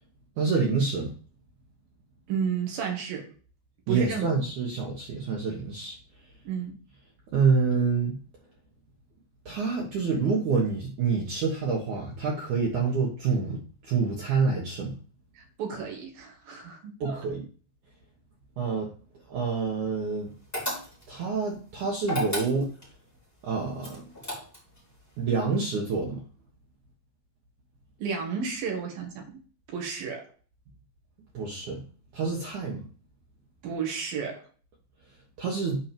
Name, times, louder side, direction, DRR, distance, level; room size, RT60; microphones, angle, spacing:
voice 1, 0.4-1.1 3.9-5.9 7.3-8.2 9.4-13.6 13.9-15.0 17.0-17.4 18.6-18.9 19.3-20.3 21.1-22.7 23.4-24.0 25.2-26.2 31.3-31.9 32.1-32.8 35.4-35.8, right 5 dB, 90° right, -2 dB, 1.7 m, -27 dB
voice 2, 2.3-3.3 3.9-4.2 6.4-6.7 15.3-17.2 28.0-29.4 29.7-30.3 33.6-34.4, right 6 dB, 60° right, 1 dB, 2.9 m, -32 dB
sound 1, 20.5-21.2 22.0-22.9 23.8-24.8, left 1 dB, 5° left, 2.8 m, -32 dB
8.8 x 4.6 x 5.1 m, 0.40 s
omnidirectional pair, 5.8 m